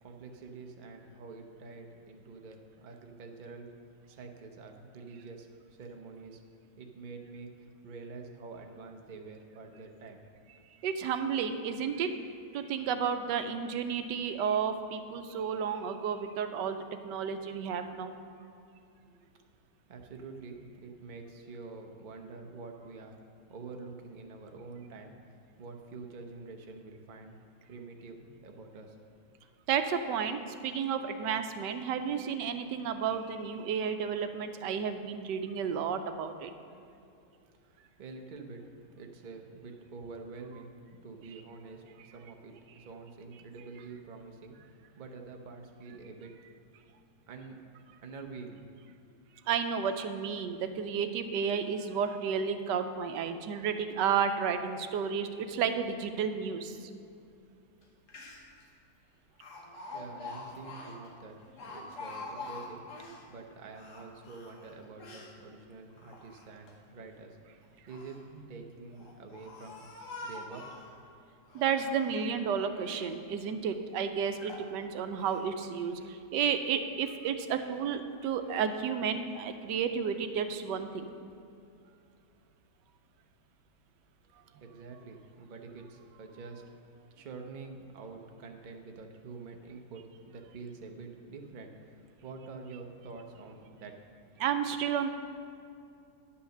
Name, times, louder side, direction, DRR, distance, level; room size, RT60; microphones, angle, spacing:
voice 1, 0.0-3.7 4.1-6.4 6.8-7.5 7.8-10.3 19.0-19.4 19.9-23.2 23.5-27.4 27.7-29.0 37.6-38.6 38.9-40.7 41.0-44.6 45.0-46.3 47.3-47.7 48.0-48.6 59.9-62.9 63.3-67.4 67.9-68.2 68.5-69.9 70.2-70.7 84.4-86.6 87.1-94.0, right 4 dB, 45° right, 3 dB, 0.6 m, -47 dB
voice 2, 10.8-12.1 12.5-18.2 29.7-36.5 49.5-56.8 71.5-81.1 94.4-95.1, right 7 dB, 85° right, 8 dB, 1.3 m, -32 dB
Speech, 57.8-57.9 58.1-58.6 59.4-63.2 63.7-65.3 65.9-66.7 67.6-68.2 68.9-70.9 71.5-72.3 72.7-73.2 73.8-73.9 74.4-74.7 75.2-75.4, left 3 dB, 50° left, 1.4 m, -45 dB
10.5 x 5.7 x 6.5 m, 2.5 s
omnidirectional pair, 1.8 m